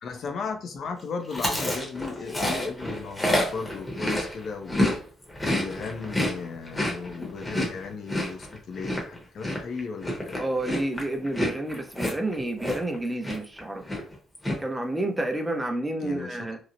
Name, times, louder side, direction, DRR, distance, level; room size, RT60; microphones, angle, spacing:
voice 1, 0.0-5.0 5.4-10.4 16.0-16.5, left 5 dB, 65° left, 5 dB, 0.5 m, -36 dB
Chewing mastication, 1.3-5.0 5.2-13.0 13.2-13.6 13.8-14.6, left 1 dB, 15° left, 0.9 m, -28 dB
voice 2, 10.4-13.8 14.6-16.6, right 1 dB, 10° right, 3 dB, 0.5 m, -30 dB
2.8 x 2.0 x 2.5 m, 0.42 s
cardioid pair, 90°, 0 cm